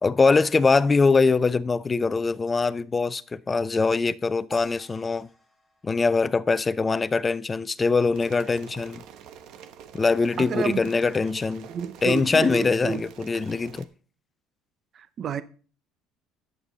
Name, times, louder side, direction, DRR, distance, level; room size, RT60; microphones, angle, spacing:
voice 1, 0.0-5.3 5.8-9.0 9.9-11.7 12.0-13.9, left 4 dB, 15° left, 0.5 m, -23 dB
sound 1, 4.5-6.9, equal, ahead, 2.7 m, -49 dB
sound 2, 8.1-13.9, right 8 dB, 60° right, 1.1 m, -46 dB
voice 2, 10.4-10.9 11.7-13.0 14.9-15.4, right 7 dB, 35° right, 0.7 m, -30 dB
11.0 x 9.1 x 3.9 m
cardioid pair, 140°, 0 cm